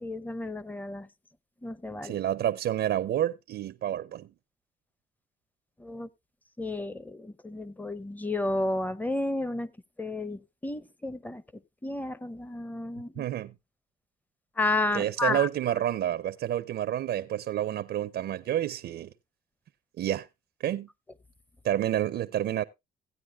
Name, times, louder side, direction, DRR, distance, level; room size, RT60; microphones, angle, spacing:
voice 1, 0.0-1.1 1.6-2.2 5.8-6.1 6.6-9.7 10.0-11.4 11.8-13.2 14.6-15.5, left 2 dB, 10° left, 0.7 m, -32 dB
voice 2, 2.0-4.3 13.2-13.5 14.9-19.1 20.0-20.3 20.6-20.9 21.6-22.6, right 11 dB, 60° right, 0.5 m, -29 dB
16.0 x 9.3 x 2.3 m
cardioid pair, 90°, 20 cm